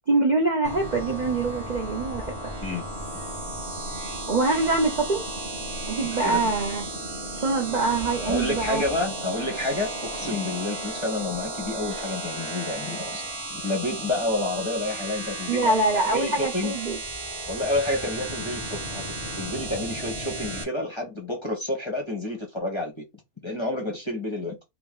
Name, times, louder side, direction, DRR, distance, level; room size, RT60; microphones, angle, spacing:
voice 1, 0.1-2.5 4.3-5.2 5.9-6.8 7.4-8.8 15.5-17.0, right 3 dB, 45° right, 0.6 m, -24 dB
sound 1, 0.6-20.6, right 1 dB, 20° right, 1.1 m, -34 dB
voice 2, 8.3-13.2 13.5-15.8 16.1-16.7 17.5-23.0 23.4-24.6, left 2 dB, 25° left, 0.9 m, -29 dB
2.9 x 2.8 x 3.6 m
omnidirectional pair, 1.5 m